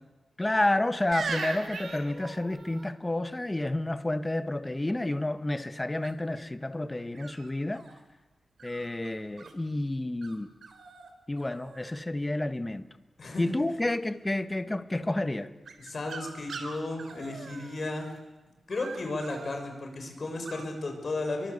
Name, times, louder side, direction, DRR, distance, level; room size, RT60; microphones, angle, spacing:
voice 1, 0.4-7.8 8.6-10.5 11.3-12.9 13.4-15.5, left 1 dB, 15° left, 1.4 m, -30 dB
sound 1, 1.1-2.9 6.0-6.4 7.2-8.0 8.6-9.5 10.2-10.4 10.6-11.1 11.4-12.0 15.7-18.2 18.7-19.6 20.5-20.7, right 4 dB, 75° right, 3.5 m, -40 dB
voice 2, 13.2-13.6 15.8-18.1 18.7-21.5, left 2 dB, 45° left, 6.4 m, -34 dB
30.0 x 24.0 x 8.3 m
wide cardioid pair, 135°, 0 cm